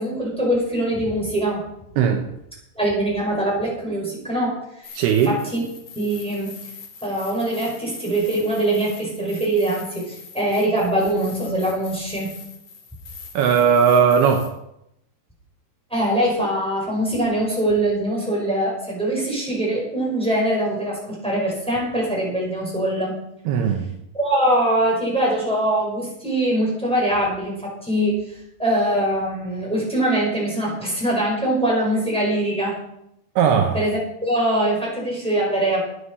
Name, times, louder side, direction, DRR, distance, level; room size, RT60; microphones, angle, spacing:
voice 1, 0.0-1.6 2.7-5.0 5.3-5.6 6.0-6.5 7.0-12.4 15.9-23.2 24.1-28.3 28.6-32.8 33.7-35.8, right 1 dB, ahead, -4 dB, 5.5 m, -23 dB
sound 1, 4.8-14.5, left 5 dB, 45° left, 2.6 m, -42 dB
voice 2, 5.0-5.4 13.3-14.5 23.5-23.9 33.4-33.8, right 7 dB, 75° right, 4 dB, 2.9 m, -18 dB
13.0 x 9.9 x 5.5 m, 0.80 s
omnidirectional pair, 4.7 m